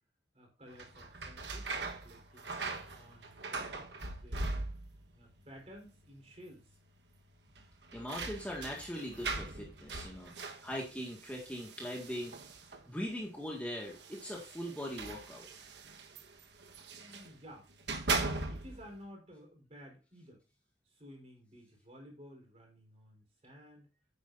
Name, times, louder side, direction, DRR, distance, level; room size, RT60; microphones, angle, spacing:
voice 1, 0.3-2.5 2.9-4.6 5.1-6.8 16.9-17.7 18.2-20.4 20.8-23.9, equal, 35° right, 1 dB, 4.3 m, -54 dB
sound 1, 0.7-5.1 5.4-6.0 6.3-6.4 7.5-12.9 13.8-17.3 17.7-18.9, right 3 dB, 75° right, 1.3 m, -40 dB
voice 2, 7.9-12.4 12.9-15.5, equal, 10° left, -2 dB, 1.8 m, -41 dB
9.5 x 8.8 x 2.6 m, 0.32 s
head